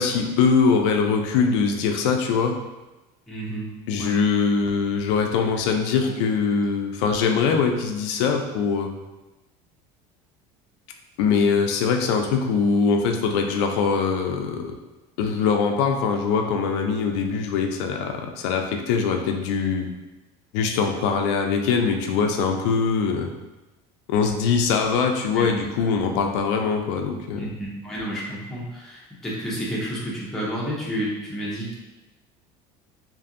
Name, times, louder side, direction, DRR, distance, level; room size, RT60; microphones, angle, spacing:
voice 1, 0.0-2.6 3.9-8.9 11.2-14.8 15.2-19.9 20.5-23.3 24.1-27.5, left 5 dB, 85° left, 4 dB, 0.4 m, -22 dB
voice 2, 3.3-4.2 6.0-6.2 25.3-25.6 26.1-26.2 27.4-31.8, equal, 5° left, -7 dB, 0.5 m, -31 dB
2.6 x 2.5 x 2.5 m, 1.1 s
cardioid pair, 170°, 15 cm